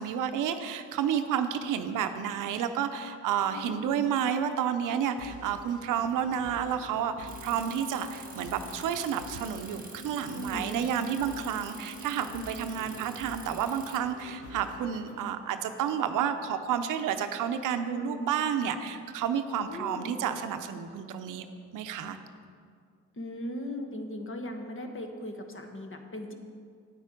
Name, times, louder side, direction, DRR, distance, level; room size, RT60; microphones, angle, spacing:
voice 1, 0.0-21.5 21.7-22.2, right 8 dB, 90° right, 9 dB, 0.6 m, -30 dB
voice 2, 3.5-3.9 10.3-10.8 17.9-18.3 19.6-20.2 23.2-26.3, equal, 40° left, 5 dB, 1.4 m, -38 dB
sound 1, 5.2-15.2, left 2 dB, 75° left, 1.4 m, -47 dB
Bicycle, 7.3-14.0, right 4 dB, 25° right, 1.4 m, -48 dB
9.1 x 8.3 x 5.0 m, 2.2 s
supercardioid pair, 55°, 31 cm